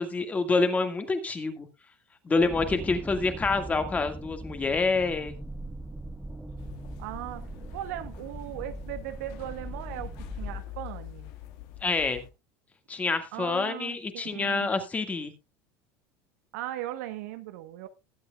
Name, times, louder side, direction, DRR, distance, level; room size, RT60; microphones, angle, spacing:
voice 1, 0.0-1.7 2.2-5.4 11.8-12.2 12.9-15.3, left 3 dB, 20° left, 1.9 m, -27 dB
sound 1, 2.4-10.6, right 1 dB, 5° right, 1.1 m, -40 dB
sound 2, 6.6-12.3, left 13 dB, 70° left, 1.9 m, -45 dB
voice 2, 7.0-11.3 13.3-14.7 16.5-17.9, right 13 dB, 85° right, 1.2 m, -38 dB
20.5 x 8.0 x 2.4 m
supercardioid pair, 120°, 8 cm